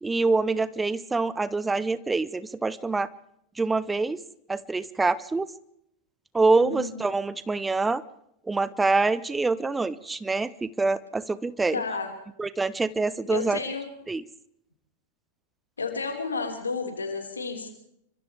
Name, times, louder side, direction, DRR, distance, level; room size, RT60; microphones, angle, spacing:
voice 1, 0.0-3.1 3.6-4.2 4.5-5.5 6.3-8.0 8.5-11.8 12.4-13.6 14.1-14.2, right 3 dB, 10° right, 17 dB, 0.8 m, -25 dB
voice 2, 6.6-7.0 11.7-12.1 13.3-13.9 15.8-17.7, left 4 dB, 75° left, 3 dB, 5.1 m, -31 dB
30.0 x 25.5 x 3.6 m, 0.77 s
figure-of-eight pair, 90°, 0 cm